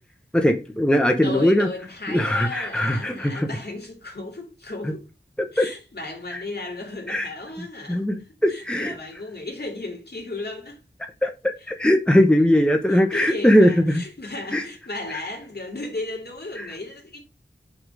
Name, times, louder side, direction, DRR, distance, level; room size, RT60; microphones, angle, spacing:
voice 1, 0.3-1.7 2.1-3.5 5.6-5.7 6.3-6.4 7.1-7.3 7.9-8.9 11.2-11.3 11.8-14.0 14.5-14.6 16.6-16.7, equal, 5° left, 1.0 m, -20 dB
voice 2, 1.2-5.1 5.5-8.1 8.5-10.8 11.6-11.7 12.9-17.2, left 2 dB, 55° left, 2.6 m, -34 dB
6.2 x 3.6 x 4.9 m
wide cardioid pair, 45°, 19 cm